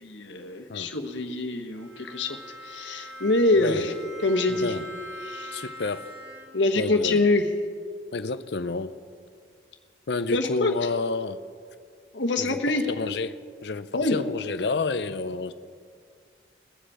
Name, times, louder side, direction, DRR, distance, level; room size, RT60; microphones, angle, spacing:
voice 1, 0.0-2.4 2.6-3.9 4.2-4.7 5.2-5.6 6.5-7.5 10.3-10.7 12.1-12.8 13.9-14.2, left 2 dB, 85° left, 4 dB, 1.3 m, -25 dB
Bowed string instrument, 1.7-6.8, equal, 60° right, 2.5 m, -42 dB
voice 2, 3.5-3.9 4.5-4.9 5.5-6.1 6.8-7.2 8.1-8.9 10.1-11.4 12.4-12.6 12.9-13.4 13.6-15.5, left 3 dB, 65° left, 12 dB, 0.6 m, -29 dB
22.0 x 7.8 x 4.9 m, 2.2 s
head